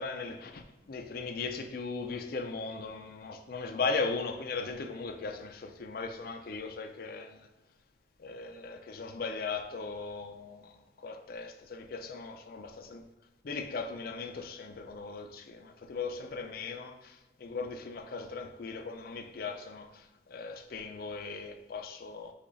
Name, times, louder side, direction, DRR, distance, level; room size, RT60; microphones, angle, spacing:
voice 1, 0.0-7.5 8.2-13.0 13.4-22.3, left 4 dB, 55° left, 0.5 m, -38 dB
5.1 x 2.3 x 4.0 m
head